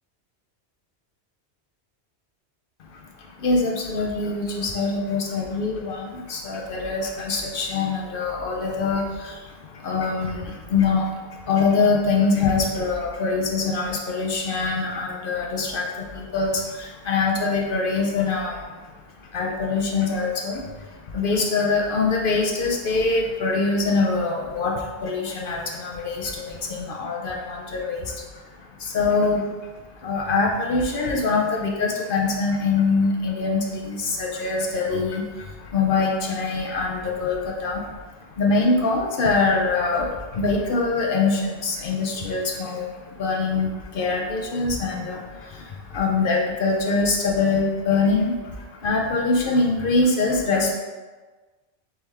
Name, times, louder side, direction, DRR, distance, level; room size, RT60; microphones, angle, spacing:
voice 1, 2.9-18.8 19.3-29.7 30.0-38.1 38.3-50.7, left 3 dB, 60° left, 0 dB, 0.7 m, -24 dB
4.2 x 3.5 x 3.4 m, 1.3 s
omnidirectional pair, 1.1 m